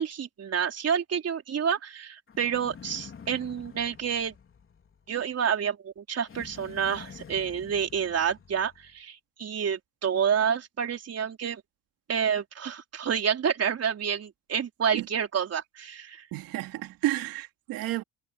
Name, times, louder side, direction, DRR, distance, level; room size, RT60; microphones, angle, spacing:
voice 1, 0.0-4.3 5.1-11.6 12.1-16.3, right 7 dB, 45° right, 4.1 m, -29 dB
sound 1, 2.3-5.3 6.3-9.0, left 6 dB, 40° left, 4.1 m, -48 dB
voice 2, 16.3-18.0, right 15 dB, 85° right, 2.8 m, -31 dB
cardioid pair, 105°, 34 cm